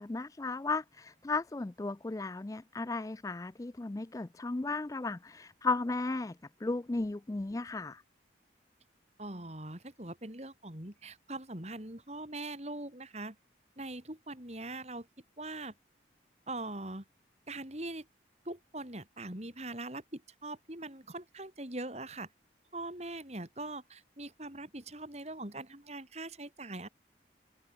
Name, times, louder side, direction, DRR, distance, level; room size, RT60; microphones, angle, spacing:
voice 1, 0.0-6.4 6.6-8.0, left 3 dB, 20° left, 0.4 m, -35 dB
voice 2, 9.2-13.4 13.8-15.1 15.4-15.7 16.5-17.0 17.5-18.1 18.5-22.3 22.7-26.9, right 2 dB, 35° right, 3.8 m, -42 dB
open air
head